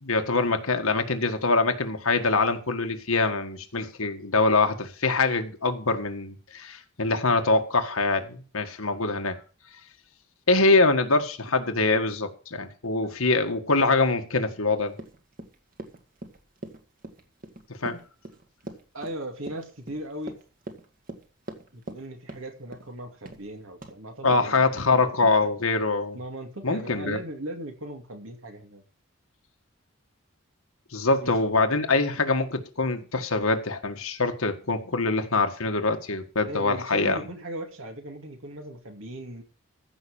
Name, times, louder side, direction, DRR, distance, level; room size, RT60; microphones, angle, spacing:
voice 1, 0.0-9.4 10.5-14.9 17.8-18.0 24.2-26.2 26.6-27.2 30.9-37.2, left 3 dB, 85° left, 1.7 m, -24 dB
Run, 14.9-22.0 22.3-22.9 23.3-23.5 23.8-23.9, right 1 dB, 40° right, 1.9 m, -41 dB
voice 2, 18.9-20.4 21.7-25.3 26.1-28.8 31.2-31.3 36.4-39.4, right 1 dB, 75° right, 2.8 m, -38 dB
15.0 x 5.9 x 7.1 m
head